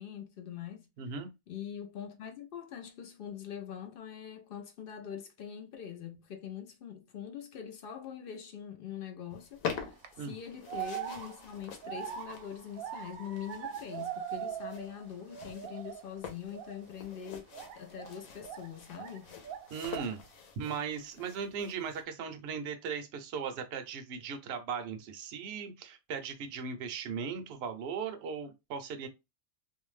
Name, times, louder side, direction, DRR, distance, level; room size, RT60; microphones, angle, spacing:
voice 1, 0.0-0.9 1.5-17.5 17.7-19.3, left 8 dB, 65° left, 0.5 m, -43 dB
voice 2, 1.0-1.3 10.2-10.3 19.7-20.2 20.6-29.1, right 6 dB, 60° right, 0.7 m, -38 dB
sound 1, 9.3-22.0, left 7 dB, 80° left, 1.1 m, -46 dB
sound 2, 9.7-10.1 10.7-15.0 15.3-16.1 16.5-16.8 17.5-19.2 19.4-20.2, right 9 dB, 85° right, 1.0 m, -41 dB
2.6 x 2.1 x 3.1 m
omnidirectional pair, 1.4 m